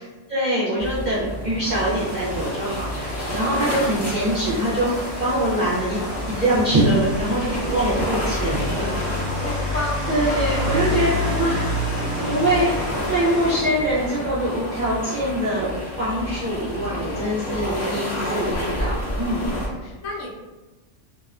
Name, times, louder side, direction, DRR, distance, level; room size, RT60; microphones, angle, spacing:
voice 1, 0.0-6.0 6.3-8.9 9.6-9.8 10.1-12.7 13.1-19.5, right 1 dB, 55° right, -9 dB, 0.5 m, -24 dB
sound 1, 0.8-19.7, left 1 dB, 25° left, 0.7 m, -30 dB
Rain, 1.6-13.6, left 1 dB, 30° right, 0.8 m, -29 dB
voice 2, 8.6-11.0 11.8-11.9 16.8-18.0 19.6-20.3, left 1 dB, 80° left, -4 dB, 1.1 m, -34 dB
2.6 x 2.1 x 2.4 m, 1.1 s
omnidirectional pair, 1.3 m